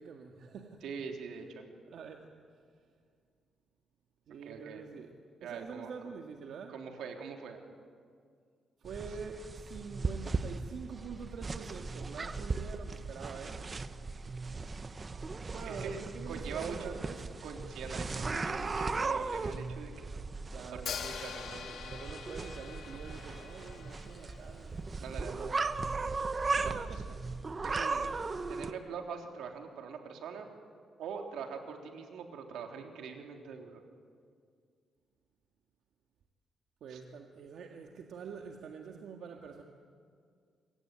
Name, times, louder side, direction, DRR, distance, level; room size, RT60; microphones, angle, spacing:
voice 1, 0.0-0.8 1.9-2.3 4.3-5.1 5.4-6.7 8.8-13.6 15.5-17.2 17.8-18.0 20.5-21.0 21.8-25.4 26.6-27.3 27.5-27.6 36.8-39.6, right 6 dB, 65° right, 3 dB, 1.8 m, -46 dB
voice 2, 0.8-1.7 4.4-4.8 5.4-5.9 6.7-7.6 15.6-16.0 16.3-16.9 17.4-20.1 20.7-21.8 25.0-25.6 26.6-27.0 27.6-28.2 28.5-30.5 31.0-33.8 36.9-37.0, right 6 dB, 85° right, 3 dB, 3.5 m, -43 dB
sound 1, 8.8-28.7, right 3 dB, 25° right, 1.0 m, -37 dB
Hi-hat, 20.9-24.8, left 7 dB, 60° left, 2.1 m, -44 dB
26.5 x 22.5 x 9.2 m, 2.2 s
cardioid pair, 145°, 0 cm